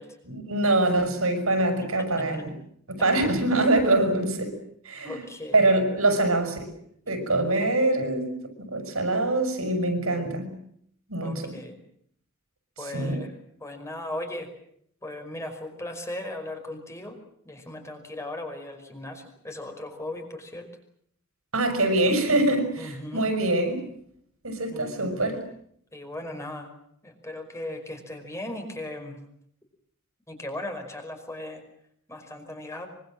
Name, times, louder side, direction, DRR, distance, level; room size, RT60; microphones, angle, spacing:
voice 1, 0.2-2.5 2.9-4.5 4.8-5.2 5.5-6.7 7.0-10.5 11.1-11.6 12.9-13.2 21.5-23.8 24.4-25.4, right 2 dB, 75° right, 8 dB, 6.4 m, -24 dB
voice 2, 1.8-2.3 5.0-5.6 11.2-11.8 12.8-13.3 13.6-14.5 15.0-17.2 17.4-20.7 22.8-23.3 24.7-25.3 25.9-26.7 27.0-29.2 30.3-31.6 32.1-32.9, left 1 dB, 15° left, 5 dB, 5.2 m, -37 dB
25.0 x 25.0 x 7.6 m, 0.69 s
head